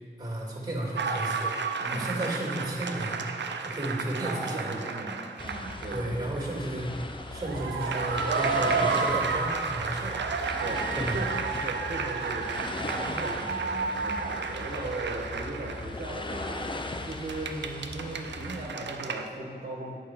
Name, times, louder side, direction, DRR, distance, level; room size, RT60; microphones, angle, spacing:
voice 1, 0.2-1.5 1.9-3.2 3.6-4.7 5.9-6.9 7.3-10.2 10.9-11.2, right 1 dB, 20° right, -2 dB, 2.3 m, -33 dB
sound 1, 0.9-6.1 6.4-6.5 7.4-16.0 17.1-19.3, right 5 dB, 80° right, 0.5 m, -31 dB
voice 2, 4.2-6.3 10.6-11.3 11.6-16.6 17.0-20.0, right 2 dB, 55° right, -4 dB, 1.2 m, -38 dB
sound 2, 5.4-18.8, left 2 dB, 25° left, 0.6 m, -38 dB
8.6 x 4.5 x 6.3 m, 2.3 s
wide cardioid pair, 80°, 18 cm